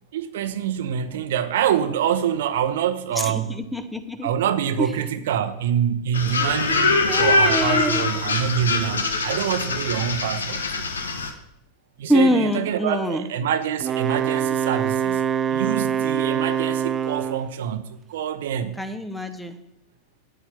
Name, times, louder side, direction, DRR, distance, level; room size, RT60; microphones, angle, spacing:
voice 1, 0.1-3.5 4.2-10.9 12.0-18.8, right 9 dB, 60° right, 0.8 m, -26 dB
voice 2, 3.2-4.3 4.8-4.9 7.1-8.0 12.1-13.3 18.8-19.6, equal, 5° left, 0.9 m, -24 dB
sound 1, 6.1-11.3, left 3 dB, 75° left, 1.1 m, -23 dB
Wind instrument woodwind instrument, 13.8-17.5, right 8 dB, 25° right, 0.4 m, -24 dB
9.0 x 8.4 x 5.9 m
figure-of-eight pair, 90°, 0 cm